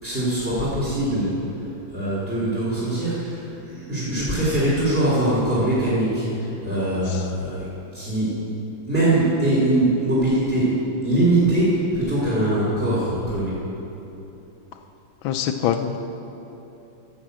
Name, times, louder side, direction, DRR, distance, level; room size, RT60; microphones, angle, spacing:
voice 1, 0.0-7.7 7.9-8.4 8.9-10.7 11.0-13.6, right 1 dB, 5° right, -9 dB, 2.0 m, -22 dB
voice 2, 15.2-16.0, left 9 dB, 75° left, 7 dB, 1.2 m, -23 dB
10.0 x 6.8 x 7.4 m, 3.0 s
omnidirectional pair, 2.4 m